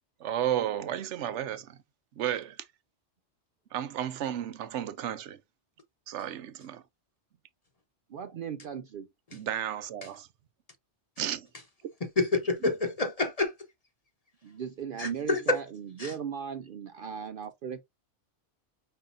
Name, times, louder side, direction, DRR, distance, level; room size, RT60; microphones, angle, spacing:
voice 1, 0.2-1.8 2.2-2.6 3.7-5.4 6.1-6.8 9.3-10.3 11.2-11.5, right 10 dB, 75° right, 0.9 m, -33 dB
voice 2, 8.1-9.1 14.4-17.8, right 7 dB, 60° right, 0.6 m, -37 dB
voice 3, 12.2-13.5 15.0-15.6 16.0-16.1, left 3 dB, 35° left, 0.9 m, -27 dB
5.6 x 3.7 x 2.5 m
omnidirectional pair, 1.2 m